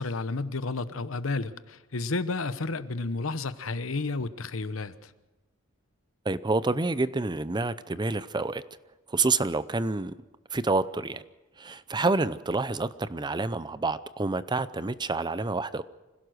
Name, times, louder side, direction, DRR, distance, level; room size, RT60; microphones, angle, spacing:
voice 1, 0.0-5.1, left 3 dB, 75° left, 13 dB, 0.9 m, -31 dB
voice 2, 6.2-8.6 9.1-10.1 10.5-11.2 11.6-15.8, right 3 dB, 20° right, 15 dB, 0.6 m, -28 dB
25.5 x 16.5 x 6.4 m, 1.1 s
head